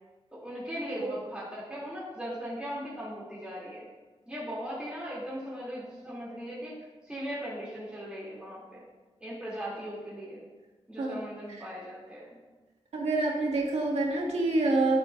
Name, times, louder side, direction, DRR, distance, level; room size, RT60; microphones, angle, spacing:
voice 1, 0.3-3.9 4.3-6.7 7.1-8.8 9.2-10.4 10.9-12.4, equal, 10° right, -7 dB, 3.6 m, -38 dB
voice 2, 12.9-15.0, right 2 dB, 85° right, -2 dB, 2.5 m, -27 dB
12.0 x 10.5 x 2.8 m, 1.2 s
wide cardioid pair, 100°, 11 cm